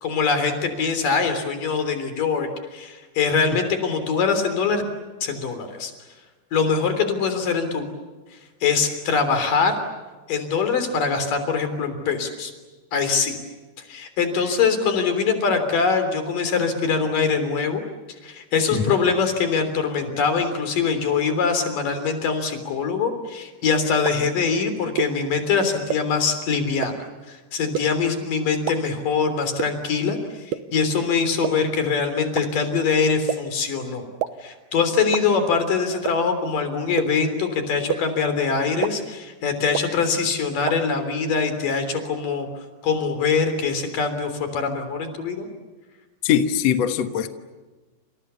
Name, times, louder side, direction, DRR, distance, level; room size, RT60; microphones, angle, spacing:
voice 1, 0.0-4.8 5.2-5.9 6.5-7.8 8.6-9.8 10.3-12.5 12.9-13.4 13.8-17.8 18.2-27.0 27.3-34.1 34.4-42.5 42.8-45.5, left 5 dB, 50° left, 8 dB, 4.8 m, -23 dB
sound 1, 24.1-24.2 25.0-25.1 25.9-26.0 26.8-26.9 27.7-27.8 28.7-28.8 29.6-29.7 30.5-30.6 31.4-31.5 32.4-32.5 33.3-33.4 34.2-34.3 35.1-35.2 36.0-36.1 37.0-37.1 37.9-38.0 38.8-38.9 39.7-39.8 40.7-40.8, right 12 dB, 70° right, 2.7 m, -24 dB
voice 2, 46.2-47.3, left 9 dB, 75° left, 8 dB, 1.5 m, -21 dB
29.5 x 28.0 x 7.0 m, 1.3 s
omnidirectional pair, 5.1 m